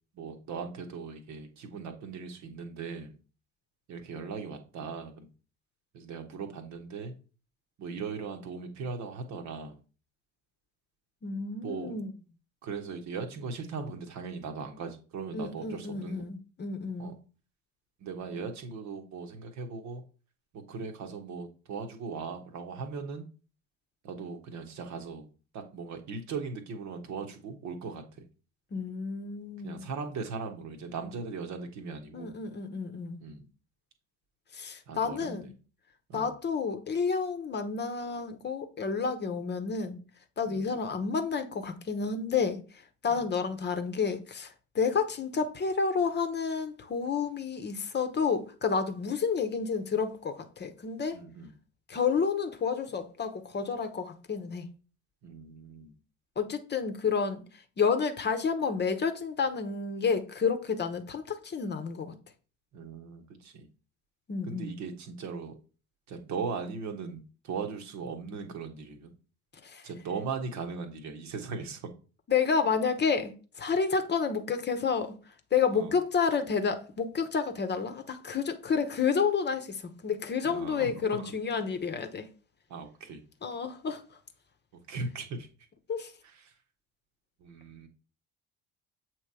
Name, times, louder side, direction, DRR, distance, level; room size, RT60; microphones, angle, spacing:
voice 1, 0.1-3.1 3.9-5.3 5.9-7.1 7.8-9.8 11.6-11.9 12.6-16.3 17.0-17.1 18.0-20.0 20.5-23.3 24.0-25.3 25.5-28.2 29.6-32.4 33.2-33.5 34.9-35.5 36.1-36.3 40.5-40.7 43.1-43.2 51.1-51.5 55.2-56.0 62.7-63.7 64.4-65.5 66.1-69.1 69.8-71.9 75.7-75.9 80.4-81.3 82.7-83.2 84.9-85.5 87.4-87.9, right 5 dB, 50° right, 1.1 m, -39 dB
voice 2, 11.2-12.1 15.3-17.1 28.7-29.9 32.1-33.2 34.5-35.5 36.1-40.0 40.4-51.2 51.9-54.7 56.4-62.1 64.3-64.7 69.6-69.9 72.3-82.3 83.4-84.0 85.9-86.1, left 5 dB, 30° left, 0.9 m, -30 dB
7.4 x 3.0 x 4.7 m
figure-of-eight pair, 55°, 36 cm